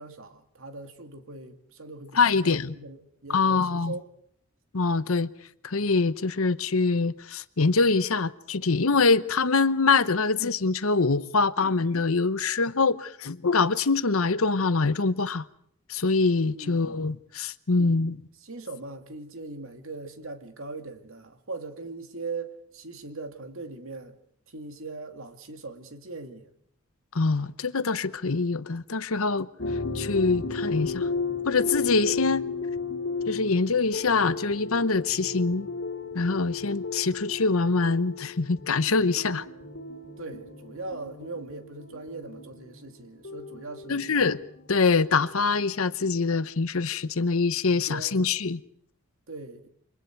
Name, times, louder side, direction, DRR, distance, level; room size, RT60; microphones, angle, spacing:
voice 1, 0.0-4.1 16.5-16.9 17.7-24.2 24.5-26.5 40.2-44.2 47.7-48.2 49.3-49.7, right 3 dB, 65° right, 2.5 m, -40 dB
voice 2, 2.1-2.7 3.3-3.9 4.7-5.3 5.6-15.4 15.9-18.2 27.1-29.5 29.9-31.1 31.4-32.4 33.3-35.7 36.1-39.4 43.9-44.4 44.7-48.6, left 4 dB, 75° left, 1.0 m, -24 dB
sound 1, 29.6-45.9, left 4 dB, 55° left, 3.1 m, -34 dB
29.0 x 25.0 x 4.7 m
head